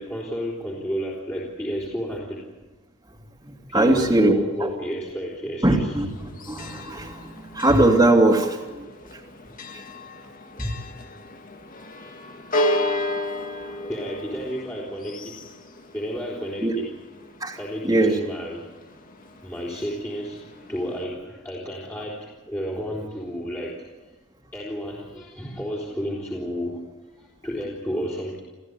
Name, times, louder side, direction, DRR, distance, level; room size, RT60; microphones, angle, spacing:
voice 1, 0.0-2.4 3.7-6.0 7.3-7.6 9.7-9.9 13.9-15.4 15.9-16.9 17.6-18.7 19.4-23.8 24.5-26.8 27.2-28.4, equal, 10° left, -5 dB, 3.9 m, -31 dB
voice 2, 3.7-4.3 4.6-4.7 5.6-6.1 6.5-7.2 7.5-8.8 16.6-16.7 17.4-17.6 17.8-18.2, right 2 dB, 20° right, 0 dB, 2.7 m, -19 dB
Church bell, 6.0-21.0, left 1 dB, 40° left, 2.2 m, -33 dB
29.5 x 15.0 x 9.7 m, 1.1 s
head